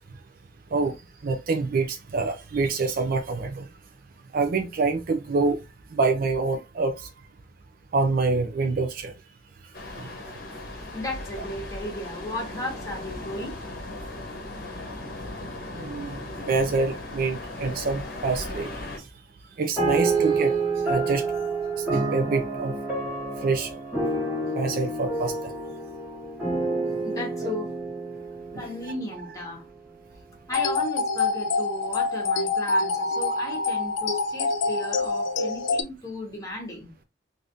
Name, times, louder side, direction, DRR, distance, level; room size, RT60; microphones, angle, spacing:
voice 1, 1.2-3.7 4.3-5.6 5.9-7.1 7.9-9.1 9.9-10.1 15.7-18.7 19.0-19.1 19.6-20.5 20.8-21.3 21.9-22.7 23.4-23.7 24.6-25.4 27.4-27.5 28.5-28.6 29.2-29.3, right 3 dB, 50° right, 0.4 m, -26 dB
sound 1, 9.7-19.0, left 2 dB, 55° left, 0.9 m, -37 dB
voice 2, 10.9-13.5 27.0-27.7 28.5-29.6 30.5-36.9, left 1 dB, 20° left, 1.3 m, -35 dB
sound 2, 19.8-29.5, right 3 dB, 10° right, 1.6 m, -28 dB
sound 3, 30.5-35.8, left 3 dB, 85° left, 0.5 m, -26 dB
3.4 x 2.6 x 2.6 m
head